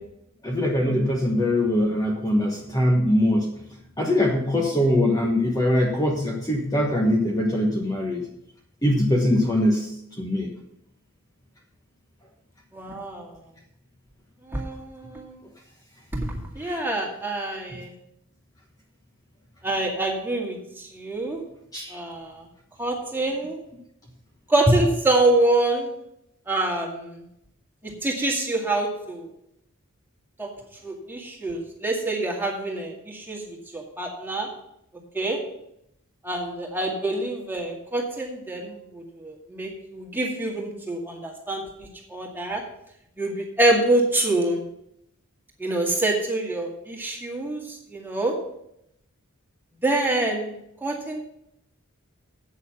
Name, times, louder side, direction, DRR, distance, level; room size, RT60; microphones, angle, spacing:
voice 1, 0.4-3.5 4.0-8.2 8.8-9.9 10.2-10.5 16.6-16.8 21.7-21.9 24.7-24.8, left 1 dB, 15° left, -1 dB, 1.2 m, -22 dB
voice 2, 12.7-13.3 14.5-15.3 16.1-17.9 19.6-21.4 21.9-22.4 22.8-23.6 24.5-25.9 26.5-27.2 27.8-29.2 30.4-30.5 30.8-33.4 33.7-34.5 35.1-35.4 36.2-42.6 43.2-44.6 45.6-48.4 49.8-50.6 50.8-51.2, right 2 dB, 10° right, -1 dB, 2.1 m, -26 dB
8.5 x 6.8 x 7.1 m, 0.78 s
head